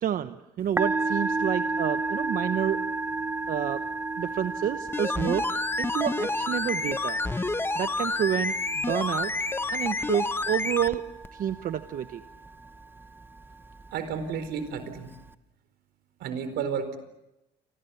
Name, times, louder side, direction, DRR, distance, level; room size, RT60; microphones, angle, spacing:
voice 1, 0.0-2.8 3.5-3.8 4.2-5.5 5.8-7.2 7.7-9.3 9.7-11.0 11.3-12.2, right 10 dB, 55° right, 10 dB, 1.0 m, -29 dB
Musical instrument, 0.6-15.3, right 3 dB, 10° right, 1.0 m, -34 dB
sound 1, 4.9-11.0 11.2-11.3, left 2 dB, 15° left, 1.0 m, -29 dB
voice 2, 13.9-15.2 16.2-17.0, right 6 dB, 75° right, 11 dB, 4.4 m, -32 dB
30.0 x 25.5 x 7.0 m, 0.93 s
cardioid pair, 110°, 17 cm